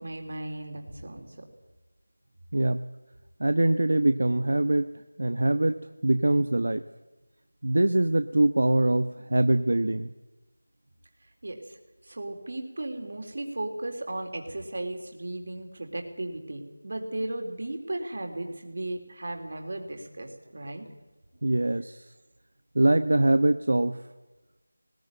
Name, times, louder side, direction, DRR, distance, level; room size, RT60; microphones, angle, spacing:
voice 1, 0.0-1.4 11.4-11.8 12.0-20.8, right 1 dB, 50° right, 4 dB, 3.9 m, -36 dB
voice 2, 2.5-2.8 3.4-4.9 5.2-6.8 7.6-10.1 21.4-22.1 22.7-24.0, right 1 dB, 70° right, 10 dB, 0.9 m, -23 dB
20.0 x 18.0 x 9.3 m, 1.2 s
figure-of-eight pair, 175°, 0 cm